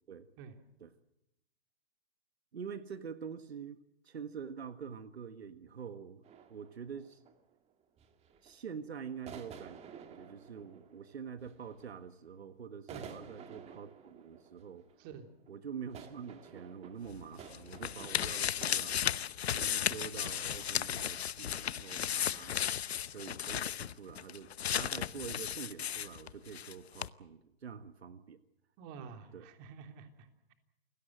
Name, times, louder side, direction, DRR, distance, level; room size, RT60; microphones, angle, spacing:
voice 1, 2.5-3.8 4.0-6.2 6.5-7.2 8.4-9.8 10.1-14.9 15.5-19.0 19.4-22.5 23.1-28.4 29.3-29.5, right 7 dB, 90° right, 11 dB, 1.6 m, -46 dB
sound 1, 6.2-7.5 8.0-8.6 9.3-12.3 12.7-19.1, right 7 dB, 20° right, 2.0 m, -52 dB
sound 2, 17.1-26.7 27.0-27.1, left 9 dB, 80° left, 0.9 m, -35 dB
voice 2, 28.8-30.5, right 6 dB, 35° right, 6 dB, 3.3 m, -49 dB
29.0 x 17.0 x 7.7 m, 0.84 s
hypercardioid pair, 135°, 31 cm